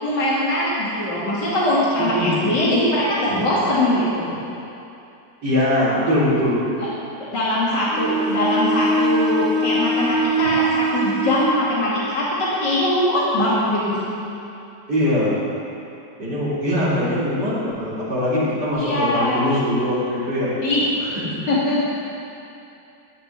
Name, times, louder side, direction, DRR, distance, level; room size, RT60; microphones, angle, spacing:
voice 1, 0.0-4.3 6.8-6.9 7.2-14.0 18.8-19.5 20.6-20.8 21.5-21.8, left 1 dB, 80° left, -7 dB, 3.1 m, -21 dB
voice 2, 2.0-2.5 5.4-6.8 14.9-15.4 16.2-20.5 21.0-21.4, left 1 dB, 75° right, -11 dB, 4.4 m, -22 dB
Bowed string instrument, 7.9-11.7, right 1 dB, 50° right, 2.6 m, -22 dB
15.0 x 7.2 x 10.0 m, 2.7 s
omnidirectional pair, 1.8 m